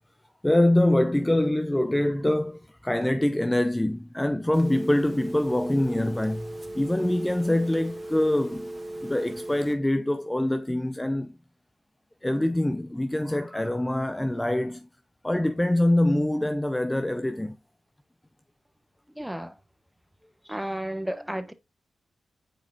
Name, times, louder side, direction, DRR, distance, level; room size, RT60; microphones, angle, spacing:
voice 1, 0.4-11.4 12.2-14.9 15.2-17.6, left 1 dB, 10° left, 0.5 m, -24 dB
Telephone, 4.5-9.7, right 1 dB, 25° right, 1.7 m, -37 dB
voice 2, 19.2-19.6 20.4-21.5, right 1 dB, 5° right, 1.0 m, -32 dB
8.8 x 4.9 x 2.3 m
supercardioid pair, 50°, 0 cm